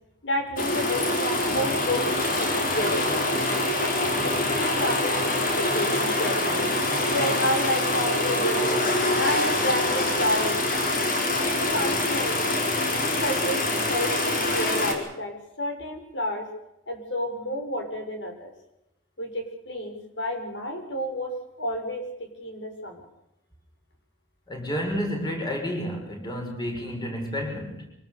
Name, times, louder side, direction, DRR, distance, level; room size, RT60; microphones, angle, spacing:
voice 1, 0.2-2.0 2.4-2.5 2.7-3.1 3.8-6.6 7.1-8.9 9.2-10.7 11.4-12.6 13.0-16.5 16.9-18.5 19.2-23.0, equal, 75° left, 4 dB, 6.6 m, -30 dB
sound 1, 0.6-14.9, left 1 dB, 50° left, 4.9 m, -25 dB
voice 2, 24.5-27.9, equal, 25° left, 2 dB, 6.7 m, -30 dB
25.5 x 19.0 x 6.9 m, 0.86 s
head